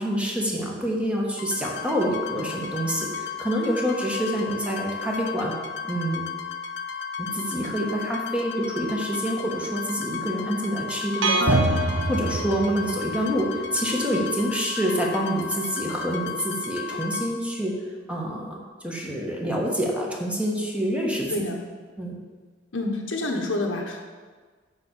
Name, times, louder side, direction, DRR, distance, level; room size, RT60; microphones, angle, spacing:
voice 1, 0.0-5.5 5.8-6.4 7.2-17.7 18.1-18.6 18.8-21.4 22.0-22.2, equal, 5° right, -2 dB, 1.5 m, -27 dB
sound 1, 1.4-17.3, left 6 dB, 65° left, 0.8 m, -34 dB
sound 2, 11.2-13.2, right 2 dB, 75° right, 0.9 m, -24 dB
voice 2, 22.7-24.0, left 2 dB, 90° left, 2 dB, 1.3 m, -28 dB
9.7 x 4.3 x 6.9 m, 1.5 s
head